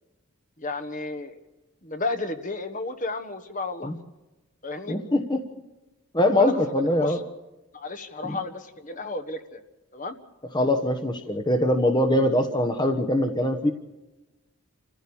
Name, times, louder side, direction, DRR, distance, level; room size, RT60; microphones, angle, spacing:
voice 1, 0.6-1.4 1.8-3.9 4.6-5.0 6.3-6.5 7.0-7.2 7.7-9.6 9.9-10.2, left 2 dB, 35° left, 8 dB, 1.3 m, -32 dB
voice 2, 4.9-5.5 6.1-7.2 8.2-8.4 10.5-13.7, left 1 dB, 20° left, 6 dB, 1.1 m, -23 dB
27.5 x 15.0 x 7.1 m, 1.1 s
head